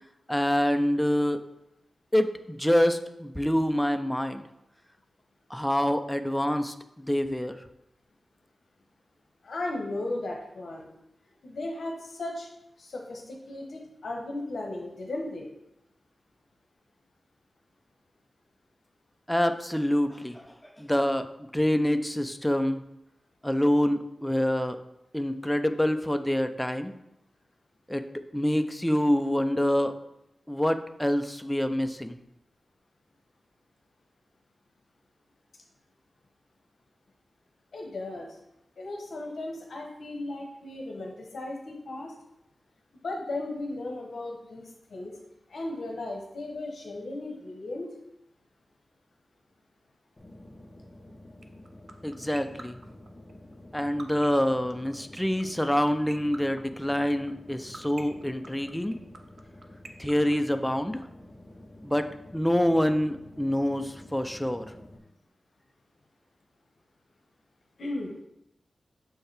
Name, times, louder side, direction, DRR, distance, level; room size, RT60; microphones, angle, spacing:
voice 1, 0.3-1.4 2.1-4.4 5.5-7.6 19.3-20.4 20.8-21.3 21.5-22.8 23.4-24.8 25.1-26.9 27.9-28.0 28.3-29.9 30.5-32.2 52.0-52.8 53.7-59.0 60.0-61.0 61.8-64.7, equal, 5° left, 8 dB, 0.3 m, -26 dB
voice 2, 9.4-10.9 11.4-12.5 12.8-15.5 37.7-38.4 38.8-42.1 42.9-45.1 45.5-47.9 67.8-68.1, left 2 dB, 70° left, 0 dB, 0.9 m, -36 dB
sound 1, 50.2-65.0, left 1 dB, 20° left, 0.8 m, -49 dB
sound 2, 51.4-61.0, right 3 dB, 50° right, 0.5 m, -43 dB
6.5 x 4.5 x 3.3 m, 0.84 s
wide cardioid pair, 140°, 0 cm